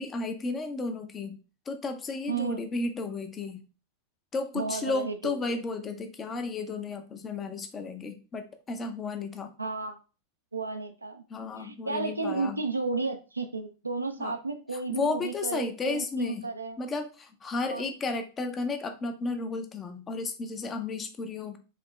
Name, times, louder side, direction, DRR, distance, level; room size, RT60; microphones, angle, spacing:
voice 1, 0.0-1.4 1.7-3.6 4.3-9.5 11.3-12.6 14.2-14.4 14.9-16.5 16.8-21.6, left 3 dB, 20° left, 7 dB, 0.7 m, -33 dB
voice 2, 2.3-2.6 4.5-5.6 9.6-10.0 10.5-11.2 11.6-16.8 17.7-17.9, right 3 dB, 80° right, 5 dB, 0.5 m, -33 dB
4.8 x 2.9 x 3.2 m, 0.34 s
figure-of-eight pair, 90°, 0 cm